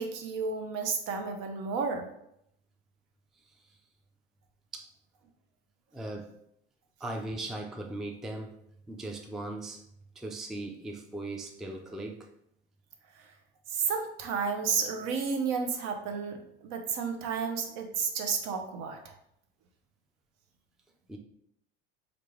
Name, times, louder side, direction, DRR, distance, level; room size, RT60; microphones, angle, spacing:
voice 1, 0.0-2.1 13.7-19.1, right 5 dB, 60° right, 5 dB, 0.7 m, -32 dB
voice 2, 5.9-6.3 7.0-8.5 8.9-9.8 10.2-12.3 21.1-21.2, right 2 dB, ahead, 2 dB, 0.3 m, -38 dB
3.3 x 2.5 x 3.1 m, 0.75 s
hypercardioid pair, 75°, 30 cm